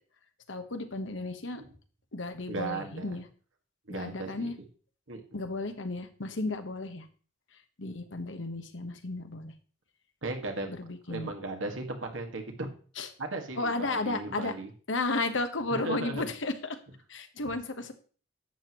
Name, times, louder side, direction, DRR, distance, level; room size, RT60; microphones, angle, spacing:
voice 1, 0.5-1.6 2.1-3.2 3.9-4.5 5.3-7.1 7.8-9.5 10.8-11.3 13.0-13.1 13.6-14.5 14.9-16.8 17.1-17.9, left 2 dB, 75° left, 7 dB, 1.2 m, -33 dB
voice 2, 2.5-3.2 3.9-4.5 5.1-5.2 10.2-10.7 11.1-12.5 13.2-14.7 15.7-16.2, right 2 dB, 90° right, 3 dB, 1.9 m, -36 dB
11.5 x 7.9 x 3.1 m, 0.41 s
head